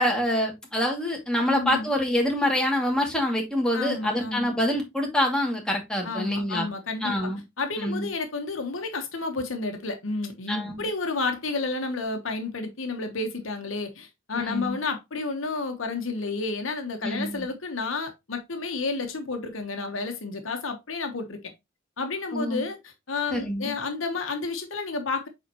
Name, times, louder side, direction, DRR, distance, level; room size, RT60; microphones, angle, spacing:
voice 1, 0.0-6.7 7.0-7.4 7.8-8.1 10.5-10.8 14.4-14.8 17.0-17.5 22.3-22.6 23.3-23.7, left 1 dB, 5° left, 2.3 m, -26 dB
voice 2, 1.5-1.9 3.7-4.5 6.0-7.3 7.6-21.4 22.0-25.3, left 3 dB, 70° left, 1.1 m, -31 dB
7.9 x 4.5 x 3.0 m
head